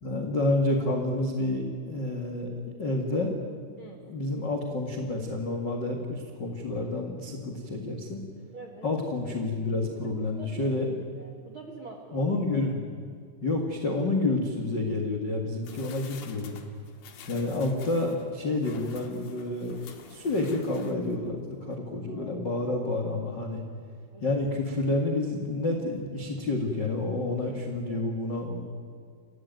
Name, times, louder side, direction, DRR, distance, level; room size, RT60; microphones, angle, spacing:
voice 1, 0.0-2.5 2.8-3.4 4.0-8.2 8.8-10.9 12.1-12.8 13.4-16.6 17.3-23.6 24.2-28.6, left 2 dB, 80° left, 2 dB, 1.0 m, -29 dB
voice 2, 8.5-8.9 10.4-10.9 11.1-12.3 22.1-22.7 24.1-24.3 27.9-28.0, right 3 dB, 85° right, 2 dB, 1.1 m, -46 dB
sound 1, 15.6-21.3 21.7-21.8, left 6 dB, 65° left, 3.3 m, -48 dB
29.0 x 15.0 x 9.2 m, 2.2 s
omnidirectional pair, 5.7 m